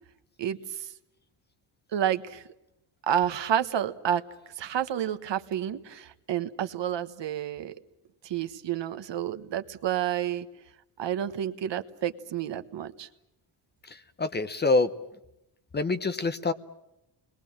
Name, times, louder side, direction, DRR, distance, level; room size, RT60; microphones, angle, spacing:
voice 1, 0.4-0.9 1.9-2.4 3.0-4.2 4.6-7.7 8.2-10.5 11.0-13.1, right 10 dB, 55° right, 10 dB, 1.4 m, -30 dB
voice 2, 13.8-14.9 15.7-16.5, left 3 dB, 20° left, 11 dB, 0.9 m, -26 dB
29.5 x 21.5 x 7.5 m, 0.88 s
wide cardioid pair, 175°, 50 cm